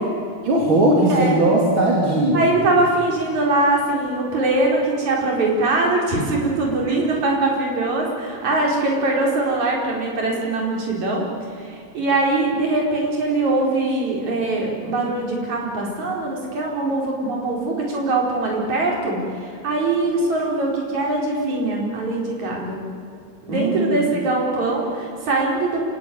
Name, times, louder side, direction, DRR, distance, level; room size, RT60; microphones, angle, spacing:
voice 1, 0.4-2.5 23.5-24.0, right 1 dB, 40° right, -2 dB, 3.5 m, -18 dB
voice 2, 2.3-11.2 11.6-22.8 23.4-25.8, right 2 dB, 70° right, -1 dB, 5.8 m, -22 dB
28.0 x 17.5 x 9.5 m, 2.4 s
omnidirectional pair, 3.4 m